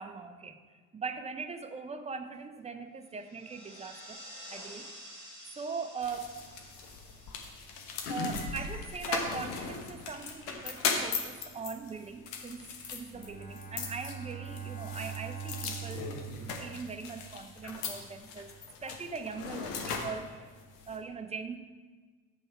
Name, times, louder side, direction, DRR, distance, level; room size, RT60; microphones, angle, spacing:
voice 1, 0.0-4.2 4.5-4.9 5.6-6.4 8.1-12.6 12.9-16.1 16.4-18.5 18.8-20.5 20.9-21.6, right 5 dB, 15° right, 7 dB, 0.6 m, -40 dB
sound 1, 3.1-9.0, equal, 85° left, 2.7 m, -50 dB
sound 2, 6.0-21.0, left 5 dB, 70° left, 1.3 m, -38 dB
Bowed string instrument, 13.1-17.5, right 8 dB, 15° left, 2.4 m, -43 dB
8.4 x 5.4 x 4.7 m, 1.4 s
figure-of-eight pair, 55°, 49 cm